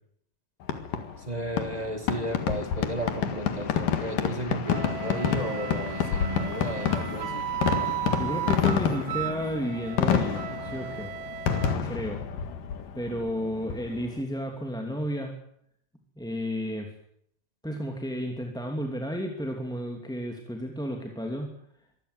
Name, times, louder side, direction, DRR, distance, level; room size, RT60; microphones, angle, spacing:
Fireworks, 0.6-14.2, left 8 dB, 70° left, 3.4 m, -29 dB
voice 1, 1.2-7.5, right 1 dB, 15° right, 7 dB, 1.6 m, -34 dB
Wind instrument woodwind instrument, 4.7-11.8, right 11 dB, 75° right, 2.8 m, -35 dB
voice 2, 8.1-11.1 11.8-12.2 12.9-15.3 16.2-16.9 17.6-21.5, equal, ahead, 2 dB, 2.0 m, -32 dB
24.5 x 15.0 x 9.6 m, 0.70 s
omnidirectional pair, 4.1 m